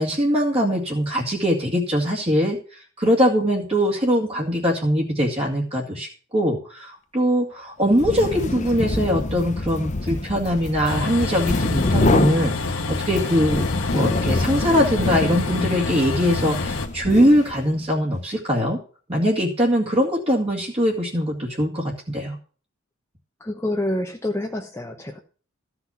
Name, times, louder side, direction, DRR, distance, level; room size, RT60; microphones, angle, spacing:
voice 1, 0.0-13.7 13.9-18.8 19.1-22.4, equal, 30° right, -3 dB, 2.2 m, -22 dB
sound 1, 7.9-17.8, left 2 dB, 35° left, 0.7 m, -26 dB
Train, 10.9-16.9, left 3 dB, 75° left, 1.4 m, -27 dB
voice 2, 23.4-25.2, left 1 dB, 15° left, 1 dB, 1.0 m, -27 dB
14.5 x 5.9 x 7.1 m, 0.41 s
head